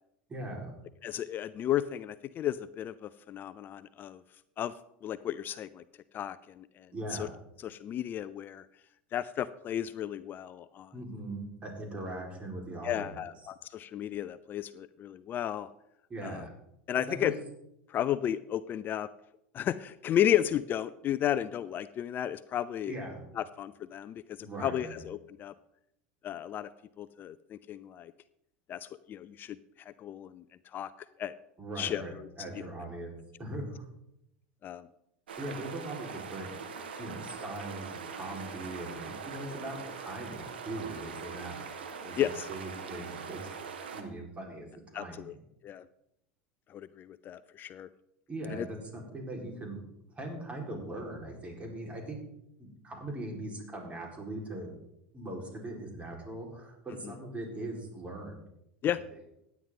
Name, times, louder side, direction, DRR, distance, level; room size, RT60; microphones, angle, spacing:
voice 1, 0.3-0.7 6.9-7.3 10.9-13.2 16.1-16.5 17.0-17.4 22.9-23.2 24.4-25.0 31.6-33.1 33.4-33.8 35.4-41.6 42.0-43.5 43.9-44.7 44.9-45.4 48.3-49.8 50.1-52.2 52.8-54.7 55.1-58.3, right 1 dB, 25° right, 0 dB, 4.4 m, -40 dB
voice 2, 1.0-4.2 4.6-4.7 5.0-5.8 6.1-7.3 7.6-8.7 9.1-10.9 12.8-15.7 16.2-16.5 16.9-17.3 17.9-19.1 19.5-22.9 23.4-25.5 26.2-26.7 27.0-28.1 28.7-29.6 30.0-30.4 30.7-30.9 31.2-31.3 31.8-32.0 34.6-34.9 42.2-42.5 44.9-45.3 45.6-45.8 46.7-47.9 48.5-48.7 57.0-57.1 58.8-59.0, left 11 dB, 40° left, 15 dB, 0.4 m, -33 dB
sound 1, 35.3-44.0, right 6 dB, 85° right, 1.5 m, -42 dB
16.0 x 9.5 x 3.8 m, 0.80 s
hypercardioid pair, 90°, 5 cm